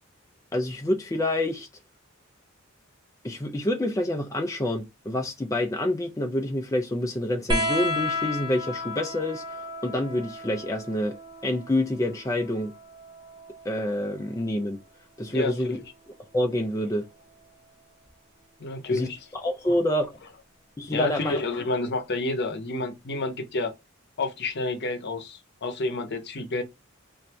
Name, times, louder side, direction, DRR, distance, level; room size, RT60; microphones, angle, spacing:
voice 1, 0.5-1.7 3.2-11.2 11.4-12.7 13.6-14.8 15.2-15.8 16.3-17.1 18.9-19.1 19.4-20.2 20.8-21.4, left 1 dB, 15° left, 0.4 m, -27 dB
sound 1, 7.5-14.6 15.9-16.8 18.1-18.2, left 1 dB, 20° right, 1.0 m, -33 dB
voice 2, 15.3-15.8 18.6-19.3 20.9-23.7 24.2-26.6, left 2 dB, 55° left, 0.8 m, -29 dB
3.2 x 2.6 x 4.5 m
head